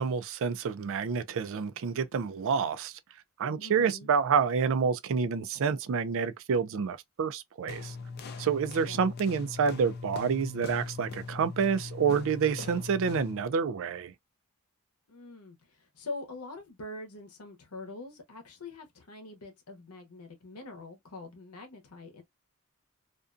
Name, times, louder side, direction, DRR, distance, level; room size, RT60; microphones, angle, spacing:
voice 1, 0.0-3.0 3.4-7.9 8.4-14.1, right 6 dB, 60° right, 0.4 m, -28 dB
voice 2, 3.6-4.1 8.8-9.1 15.1-22.2, left 2 dB, 90° left, 0.8 m, -44 dB
sound 1, 7.7-13.5, left 4 dB, 45° left, 0.4 m, -41 dB
2.5 x 2.2 x 2.4 m
head